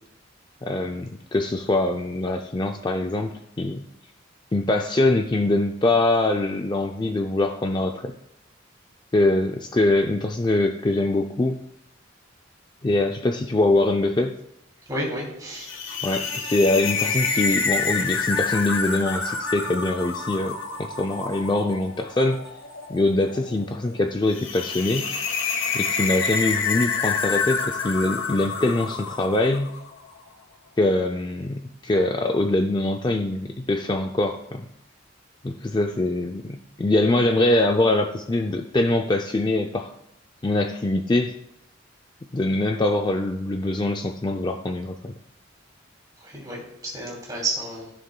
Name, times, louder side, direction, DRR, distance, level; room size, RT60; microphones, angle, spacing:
voice 1, 0.6-3.8 4.5-8.1 9.1-11.6 12.8-14.4 16.0-22.4 22.9-25.1 25.7-29.7 30.8-34.7 35.4-39.9 40.4-41.3 42.3-45.1, left 2 dB, 20° left, 4 dB, 0.4 m, -23 dB
voice 2, 14.9-15.7 46.2-47.9, right 2 dB, 20° right, -3 dB, 2.7 m, -31 dB
sound 1, 15.6-29.9, left 5 dB, 85° left, 1.0 m, -28 dB
14.5 x 6.6 x 2.3 m, 0.81 s
head